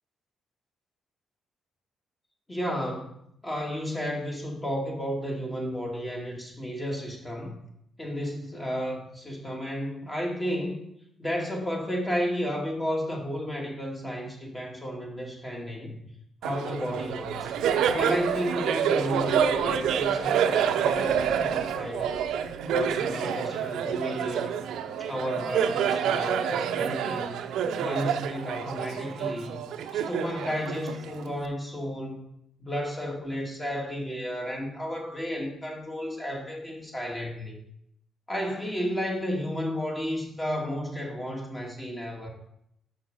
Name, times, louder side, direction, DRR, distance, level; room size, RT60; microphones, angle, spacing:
voice 1, 2.5-3.1 3.4-7.6 8.0-10.8 11.2-16.0 16.4-17.5 17.9-22.3 22.7-24.6 25.0-27.4 27.8-29.6 29.9-32.3 32.6-37.6 38.3-42.3, equal, 20° left, 0 dB, 2.3 m, -32 dB
Laughter, 16.4-31.4, right 8 dB, 80° right, 0.6 m, -28 dB
6.5 x 6.1 x 5.4 m, 0.75 s
cardioid pair, 90°, 0 cm